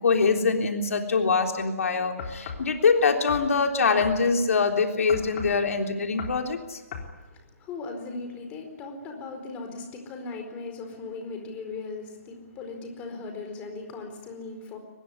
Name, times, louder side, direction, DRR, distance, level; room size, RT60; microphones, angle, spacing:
voice 1, 0.0-6.8, left 4 dB, 70° left, 4 dB, 3.6 m, -24 dB
sound 1, 2.2-2.7 3.3-3.5 4.0-4.2 5.1-5.6 6.2-6.4 6.9-7.1, left 6 dB, 40° left, 3.9 m, -36 dB
voice 2, 7.2-14.8, left 3 dB, 15° left, 4 dB, 4.5 m, -38 dB
23.5 x 20.5 x 9.8 m, 1.1 s
hypercardioid pair, 160°, 8 cm